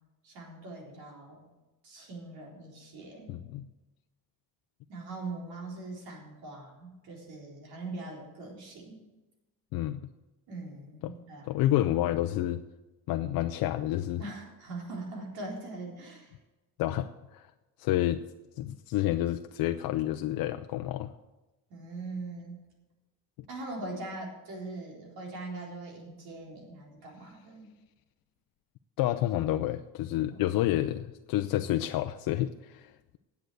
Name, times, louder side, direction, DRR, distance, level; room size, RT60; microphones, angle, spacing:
voice 1, 0.2-1.4 1.8-3.4 4.9-9.0 10.5-11.7 14.2-16.4 21.7-22.6 23.5-27.7 30.3-30.6, right 2 dB, 85° right, -1 dB, 4.0 m, -42 dB
voice 2, 3.3-3.7 9.7-10.1 11.0-11.1 11.5-12.6 13.1-14.2 16.8-17.5 17.8-18.2 18.6-21.1 29.0-33.2, left 13 dB, 75° left, 7 dB, 0.6 m, -29 dB
10.5 x 8.0 x 7.8 m, 1.1 s
cardioid pair, 170°, 36 cm